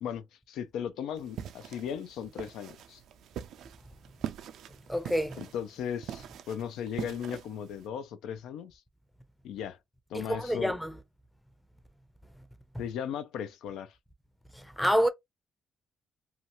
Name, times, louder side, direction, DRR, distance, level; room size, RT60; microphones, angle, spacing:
voice 1, 0.0-3.0 5.4-8.8 9.4-9.8 10.1-10.8 12.8-13.9, left 8 dB, 85° left, 0.5 m, -37 dB
sound 1, 1.2-7.9, right 10 dB, 75° right, 0.4 m, -43 dB
voice 2, 4.9-5.4 10.1-11.0 14.5-15.1, equal, 5° left, 0.5 m, -28 dB
2.8 x 2.3 x 2.8 m
cardioid pair, 90°, 0 cm